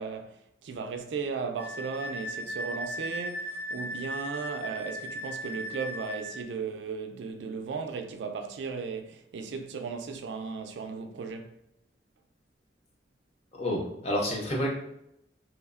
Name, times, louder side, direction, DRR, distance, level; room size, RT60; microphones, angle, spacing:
voice 1, 0.0-11.5, right 5 dB, 90° right, 0.3 m, -36 dB
Wind instrument woodwind instrument, 1.6-6.3, equal, 70° left, 1.5 m, -37 dB
voice 2, 13.5-14.7, equal, 35° left, 0.6 m, -29 dB
3.1 x 2.0 x 2.3 m
head